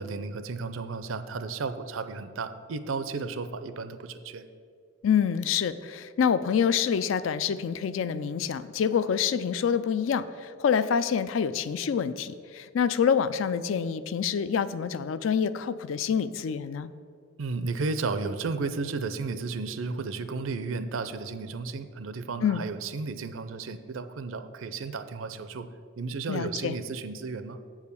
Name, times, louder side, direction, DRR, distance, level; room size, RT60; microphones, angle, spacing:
voice 1, 0.0-4.5 17.4-25.7 26.0-27.6, right 4 dB, 80° right, 11 dB, 0.5 m, -33 dB
voice 2, 5.0-16.9 22.4-22.6 26.3-26.8, left 7 dB, 80° left, 14 dB, 0.4 m, -27 dB
7.4 x 4.8 x 6.9 m, 2.2 s
head